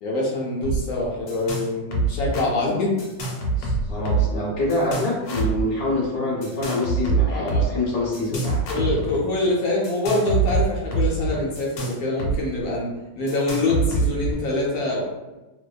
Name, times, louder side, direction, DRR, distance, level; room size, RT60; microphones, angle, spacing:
voice 1, 0.0-3.0 3.6-3.7 7.3-7.7 8.7-12.9 13.2-15.0, left 2 dB, 70° left, -3 dB, 1.0 m, -25 dB
sound 1, 0.6-1.7 1.9-2.4 3.0-4.4 4.7-5.6 6.4-7.7 8.1-9.2 9.8-12.4 12.6-12.7 13.3-14.3, right 3 dB, 85° left, 1.2 m, -24 dB
voice 2, 3.9-8.6, left 2 dB, 40° left, -5 dB, 0.6 m, -25 dB
2.7 x 2.2 x 2.3 m, 1.1 s
omnidirectional pair, 1.7 m